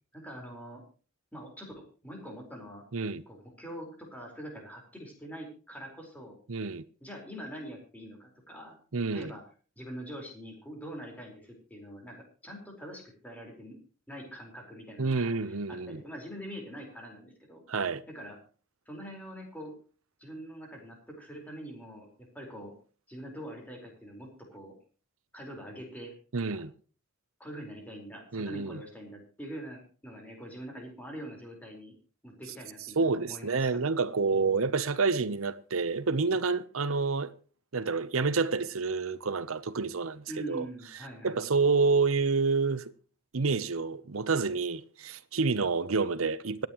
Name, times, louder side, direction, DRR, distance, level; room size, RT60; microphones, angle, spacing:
voice 1, 0.1-0.8 1.3-2.8 3.3-6.4 7.0-8.8 9.1-9.4 9.8-13.8 14.1-17.6 18.1-18.4 18.9-19.7 20.2-22.1 22.3-22.7 23.1-24.7 25.3-26.6 27.4-31.9 32.2-33.7 34.3-34.7 40.3-41.4, equal, 10° left, 4.6 m, -44 dB
voice 2, 2.9-3.2 6.5-6.8 8.9-9.3 15.0-16.0 17.7-18.0 26.3-26.7 28.3-28.8 33.0-37.3 37.7-40.6 41.2-42.9 43.3-46.7, right 4 dB, 80° right, 0.8 m, -28 dB
25.5 x 9.0 x 3.1 m
head